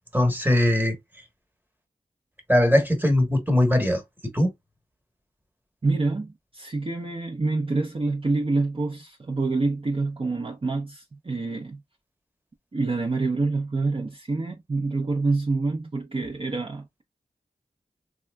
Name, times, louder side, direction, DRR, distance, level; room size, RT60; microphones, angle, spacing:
voice 1, 0.1-1.0 2.5-4.0 4.3-4.5, left 1 dB, 10° right, 1.1 m, -20 dB
voice 2, 5.8-11.8 12.7-17.0, right 3 dB, 35° right, 0.6 m, -27 dB
3.4 x 2.8 x 2.2 m
cardioid pair, 50°, 15 cm